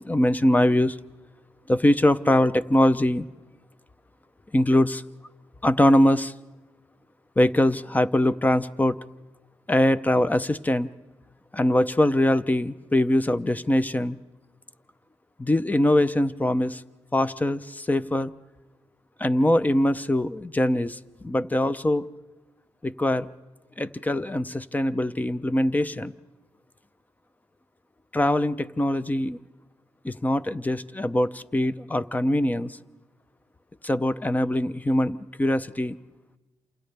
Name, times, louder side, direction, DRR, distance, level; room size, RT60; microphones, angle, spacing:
voice 1, 0.0-1.0 1.7-3.2 4.5-5.0 5.6-6.3 7.4-9.0 9.7-10.9 11.5-14.2 15.4-16.8 17.1-18.3 19.2-22.1 22.8-23.3 23.8-26.1 28.1-29.4 30.0-32.8 33.8-36.0, left 1 dB, 15° left, 15 dB, 0.6 m, -22 dB
28.0 x 27.5 x 3.4 m, 1.1 s
cardioid pair, 85°, 10 cm